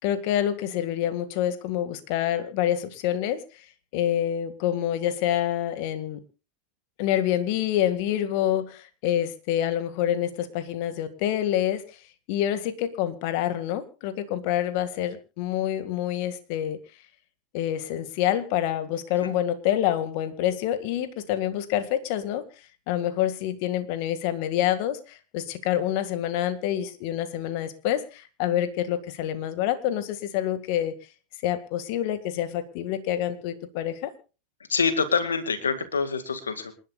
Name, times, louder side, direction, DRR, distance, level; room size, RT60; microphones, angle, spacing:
voice 1, 0.0-3.7 3.9-6.2 7.0-16.8 17.5-30.9 31.4-34.1, left 11 dB, 55° left, 10 dB, 1.9 m, -27 dB
voice 2, 34.7-36.7, left 5 dB, 90° left, 10 dB, 2.0 m, -26 dB
27.5 x 11.5 x 2.4 m, 0.33 s
hypercardioid pair, 95°, 0 cm